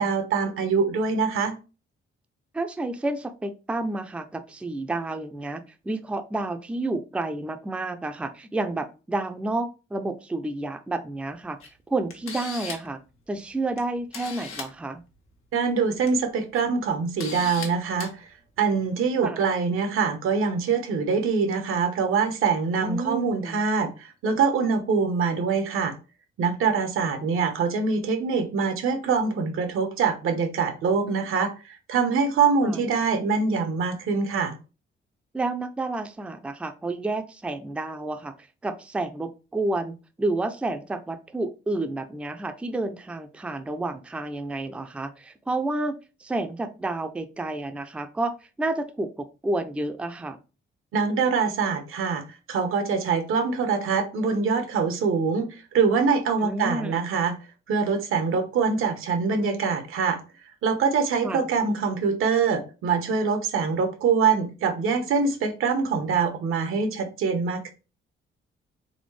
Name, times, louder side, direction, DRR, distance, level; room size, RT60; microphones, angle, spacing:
voice 1, 0.0-1.5 15.5-18.3 18.6-25.9 26.4-34.6 50.9-52.2 52.5-57.3 57.7-60.2 60.6-67.7, right 5 dB, 90° right, 7 dB, 1.0 m, -24 dB
voice 2, 2.5-11.6 11.9-13.0 13.3-15.0 19.2-19.4 22.8-23.6 32.6-32.8 35.3-38.3 38.6-50.4 56.4-57.1 61.2-61.5, right 2 dB, 5° right, 7 dB, 0.4 m, -30 dB
Camera, 11.6-11.7 12.1-12.9 13.8-13.9 14.1-14.7 15.9-16.1 16.5-16.6 17.2-17.7 18.0-18.1, left 5 dB, 85° left, 1.3 m, -36 dB
4.1 x 3.4 x 3.2 m, 0.32 s
cardioid pair, 145°, 21 cm